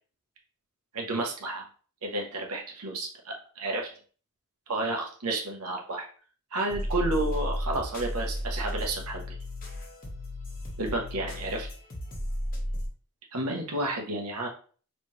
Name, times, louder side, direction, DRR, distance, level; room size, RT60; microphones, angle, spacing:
voice 1, 0.9-1.6 2.0-3.9 4.7-6.1 6.5-9.3 10.8-11.7 13.3-14.5, right 2 dB, 90° right, 2 dB, 1.0 m, -31 dB
sound 1, 6.7-12.9, equal, 40° left, 1.4 m, -34 dB
4.6 x 3.3 x 3.1 m, 0.42 s
head